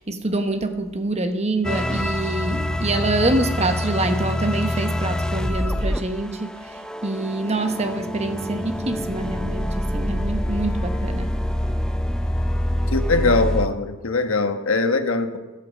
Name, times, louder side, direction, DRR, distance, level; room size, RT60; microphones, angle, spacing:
voice 1, 0.0-11.3, right 2 dB, 30° right, 7 dB, 1.1 m, -26 dB
sound 1, 1.6-13.7, left 1 dB, 5° left, 0.5 m, -26 dB
voice 2, 12.9-15.4, left 3 dB, 90° left, 7 dB, 1.3 m, -21 dB
13.0 x 12.0 x 5.2 m, 1.2 s
head